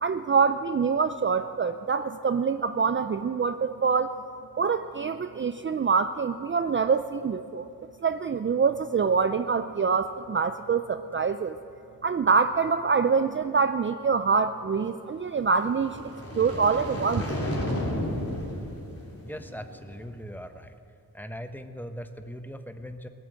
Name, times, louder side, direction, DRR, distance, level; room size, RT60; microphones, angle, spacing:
voice 1, 0.0-4.1 4.6-7.7 8.0-11.6 12.0-17.2, right 5 dB, 35° right, 10 dB, 0.4 m, -25 dB
sound 1, 15.6-19.9, left 1 dB, 40° left, 3.4 m, -33 dB
voice 2, 19.3-20.7 21.1-23.1, equal, 5° left, 8 dB, 0.9 m, -40 dB
17.5 x 8.9 x 7.9 m, 2.6 s
wide cardioid pair, 75°, 37 cm